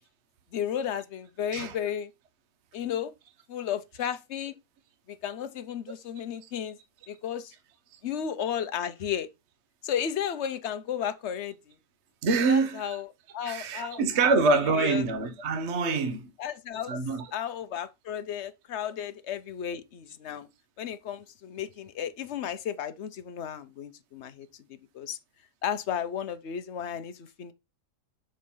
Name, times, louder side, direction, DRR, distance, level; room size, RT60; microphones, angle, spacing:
voice 1, 0.5-2.1 2.7-3.1 3.5-4.5 5.1-6.8 7.1-7.5 8.0-9.3 9.8-11.7 12.4-14.3 14.7-15.1 16.4-16.9 17.3-20.5 20.8-24.5 24.9-25.2 25.6-27.5, left 9 dB, 50° left, 1.0 m, -33 dB
voice 2, 12.2-12.9 13.4-16.3 16.9-17.3, right 4 dB, 50° right, 1.1 m, -25 dB
6.4 x 4.5 x 5.5 m
omnidirectional pair, 1.7 m